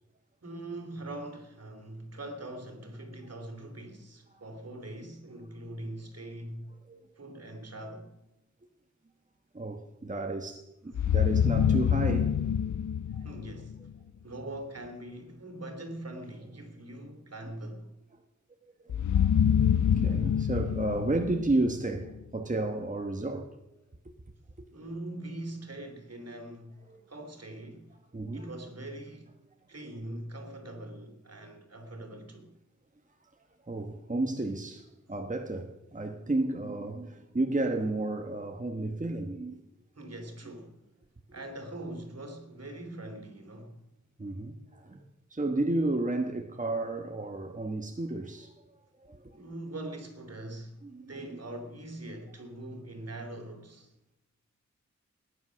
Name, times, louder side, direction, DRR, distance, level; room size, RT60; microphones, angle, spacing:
voice 1, 0.4-6.7 7.2-8.1 13.2-13.8 14.2-17.9 24.7-26.8 27.1-28.0 28.3-29.3 29.7-32.5 39.9-40.8 41.3-43.8 49.3-50.8 51.1-53.9, right 1 dB, 60° right, 3.1 m, -42 dB
voice 2, 9.5-12.3 13.1-13.2 18.8-23.5 28.1-28.5 33.7-39.6 44.2-45.0 45.3-48.5 49.0-49.2 50.8-51.1, right 2 dB, 25° right, 1.3 m, -32 dB
sound 1, 10.9-13.9 18.9-22.1, left 8 dB, 80° left, 0.5 m, -26 dB
19.0 x 10.0 x 6.4 m
wide cardioid pair, 65°, 29 cm